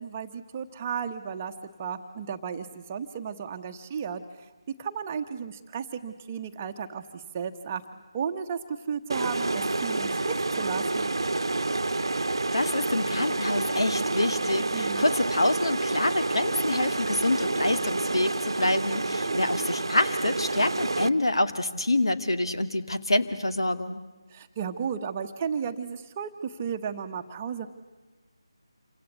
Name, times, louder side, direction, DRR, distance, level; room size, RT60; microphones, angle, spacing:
voice 1, 0.0-1.5 1.8-4.2 4.8-7.8 8.1-11.1 14.7-15.1 19.2-19.4 24.3-27.7, right 7 dB, 20° right, 6 dB, 1.2 m, -34 dB
sound 1, 9.1-21.1, right 2 dB, 60° right, 1.1 m, -28 dB
voice 2, 12.2-24.0, left 1 dB, 65° left, 9 dB, 2.3 m, -26 dB
28.5 x 25.5 x 8.2 m, 1.2 s
figure-of-eight pair, 155°, 3 cm